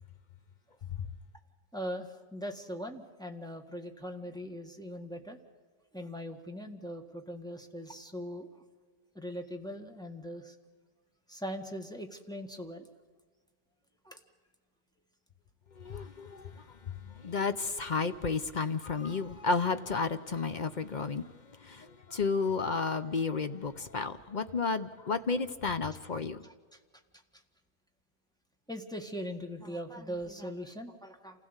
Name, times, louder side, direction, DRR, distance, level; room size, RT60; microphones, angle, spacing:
voice 1, 1.7-5.4 5.9-8.5 9.1-10.5 11.3-12.9 14.0-14.2 26.4-26.8 27.3-27.4 28.7-31.5, equal, ahead, 1.6 m, -41 dB
voice 2, 15.8-21.3 21.6-26.5, left 4 dB, 45° left, 0.6 m, -32 dB
27.5 x 16.0 x 8.2 m
omnidirectional pair, 1.8 m